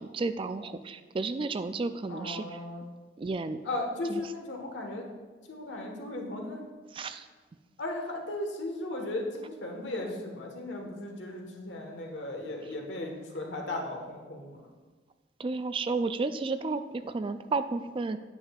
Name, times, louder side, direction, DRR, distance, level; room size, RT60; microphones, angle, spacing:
voice 1, 0.0-2.6 3.2-3.6 4.1-4.2 6.9-7.3 15.4-18.2, right 3 dB, 30° right, 11 dB, 0.3 m, -32 dB
voice 2, 2.1-2.9 3.6-5.0 5.5-6.6 7.8-14.7, left 2 dB, 80° left, 1 dB, 1.4 m, -36 dB
9.9 x 9.4 x 2.4 m, 1.4 s
head